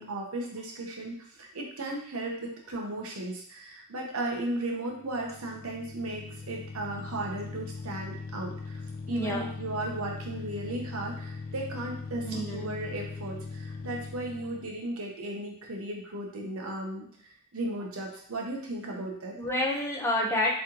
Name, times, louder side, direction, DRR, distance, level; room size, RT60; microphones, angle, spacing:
voice 1, 0.0-8.8 9.1-17.1 17.5-19.4, right 1 dB, 75° right, -1 dB, 0.9 m, -35 dB
sound 1, 4.9-14.8, left 4 dB, 40° left, 0.3 m, -40 dB
voice 2, 9.1-9.5 12.2-12.8 19.3-20.5, left 1 dB, 10° left, -3 dB, 0.7 m, -29 dB
3.6 x 3.3 x 2.9 m, 0.63 s
head